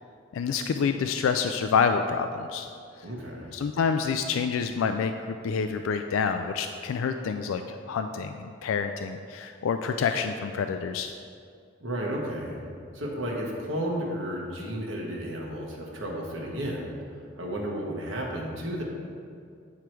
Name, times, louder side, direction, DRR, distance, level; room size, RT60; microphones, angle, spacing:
voice 1, 0.3-2.7 3.5-11.1, left 6 dB, 85° left, 7 dB, 0.3 m, -27 dB
voice 2, 3.0-3.5 11.8-12.6 12.9-18.8, equal, 75° right, -2 dB, 1.2 m, -33 dB
8.7 x 4.7 x 4.5 m, 2.3 s
head